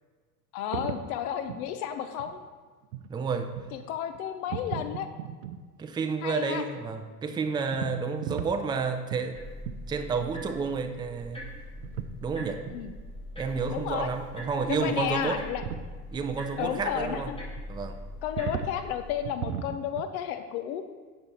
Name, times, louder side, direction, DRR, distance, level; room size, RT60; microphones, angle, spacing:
voice 1, 0.5-2.4 3.7-5.1 6.2-6.6 12.7-12.9 13.7-14.1 14.7-15.6 16.6-17.4 18.2-20.8, left 9 dB, 60° left, 9 dB, 0.9 m, -32 dB
sound 1, 0.7-1.1 1.5-1.6 2.2-2.4 2.8-3.1 3.6-3.8 4.1-4.2 4.5-5.6 7.7-8.8 9.1-9.3 9.7-9.8 10.1-10.3 10.6-10.7 10.8-10.9 11.8-12.1 12.4-12.8 15.0-15.1 15.4-15.9 17.6-17.7 18.4-18.8 19.2-20.1, right 9 dB, 75° right, 0.8 m, -36 dB
voice 2, 3.1-3.5 5.8-9.4 9.9-11.4 12.2-12.6 13.4-15.4 16.1-17.3 17.7-18.0, right 5 dB, 10° right, 6 dB, 0.5 m, -30 dB
sound 2, 9.3-19.3, left 1 dB, 10° left, 2.7 m, -42 dB
9.3 x 5.6 x 4.4 m, 1.4 s
hypercardioid pair, 95°, 48 cm